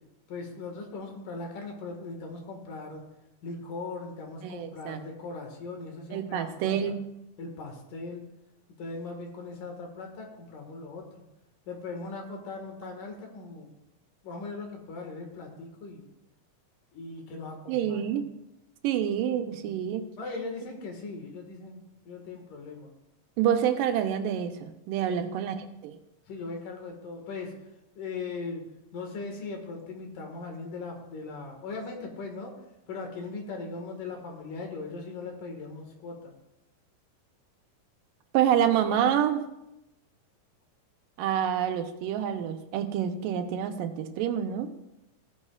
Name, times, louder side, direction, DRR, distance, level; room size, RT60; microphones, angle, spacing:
voice 1, 0.3-3.0 3.4-6.9 7.4-8.2 8.8-11.2 11.7-13.7 14.2-16.1 16.9-18.0 20.2-22.9 25.1-25.2 26.3-27.5 28.0-28.6 28.9-32.5 32.9-36.3, left 3 dB, 75° left, 2 dB, 3.2 m, -39 dB
voice 2, 4.4-5.0 6.1-7.0 17.7-18.2 18.8-20.1 23.4-25.6 25.8-26.0 38.3-39.4 41.2-44.7, right 9 dB, 85° right, 8 dB, 2.4 m, -27 dB
16.0 x 9.8 x 2.4 m, 0.90 s
omnidirectional pair, 3.8 m